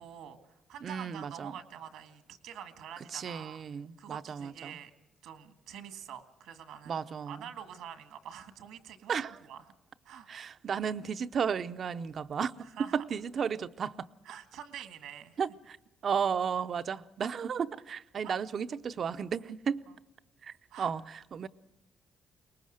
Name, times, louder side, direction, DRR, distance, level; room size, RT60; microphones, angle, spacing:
voice 1, 0.0-3.6 4.0-4.9 5.2-7.0 7.3-9.7 10.0-10.3 12.6-13.0 14.2-15.4 18.2-18.4 19.9-20.0 20.7-20.9, right 9 dB, 90° right, 1.7 m, -46 dB
voice 2, 0.8-1.5 3.1-4.8 6.9-7.4 9.1-9.4 10.3-12.5 12.8-14.1 15.4-15.8 16.0-19.8 20.4-21.5, right 7 dB, 55° right, 0.6 m, -34 dB
23.0 x 19.5 x 6.5 m
cardioid pair, 90°, 0 cm